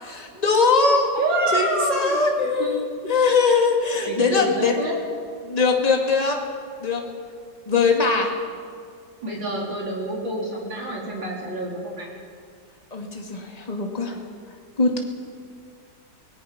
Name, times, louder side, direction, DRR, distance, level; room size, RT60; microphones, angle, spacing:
voice 1, 0.0-1.1 1.5-2.8 3.1-4.7 5.4-6.4 6.8-7.0 7.7-8.3 12.9-14.1 14.8-15.0, left 4 dB, 20° left, 1 dB, 2.2 m, -21 dB
voice 2, 1.1-2.2 2.6-2.7 3.0-3.3 4.0-4.9 9.2-12.1, right 1 dB, 90° right, -3 dB, 4.9 m, -27 dB
26.0 x 18.5 x 5.9 m, 2.2 s
omnidirectional pair, 2.0 m